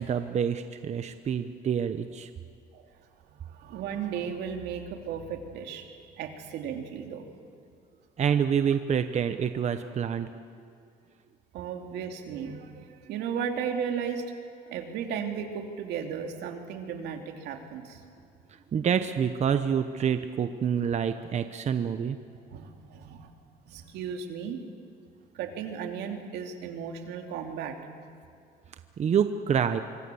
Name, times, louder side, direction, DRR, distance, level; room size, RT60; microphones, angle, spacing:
voice 1, 0.0-2.3 8.2-10.3 18.5-22.2 29.0-29.8, right 7 dB, 40° right, 9 dB, 0.9 m, -27 dB
voice 2, 3.3-7.3 8.7-8.8 11.5-14.3 14.6-18.0 22.5-23.3 23.7-24.6 25.3-27.7, right 7 dB, 80° right, 4 dB, 2.8 m, -35 dB
25.5 x 24.5 x 7.1 m, 2.4 s
cardioid pair, 110°, 17 cm